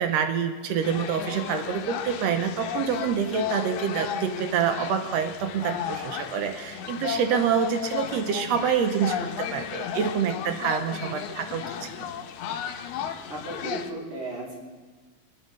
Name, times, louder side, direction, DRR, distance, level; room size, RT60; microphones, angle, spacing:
voice 1, 0.0-11.9, right 7 dB, 75° right, 7 dB, 1.7 m, -27 dB
sound 1, 0.8-13.9, left 9 dB, 85° left, 2.1 m, -34 dB
voice 2, 11.6-11.9 13.3-14.6, right 2 dB, 45° right, -5 dB, 3.7 m, -36 dB
25.0 x 9.8 x 3.2 m, 1.4 s
omnidirectional pair, 3.4 m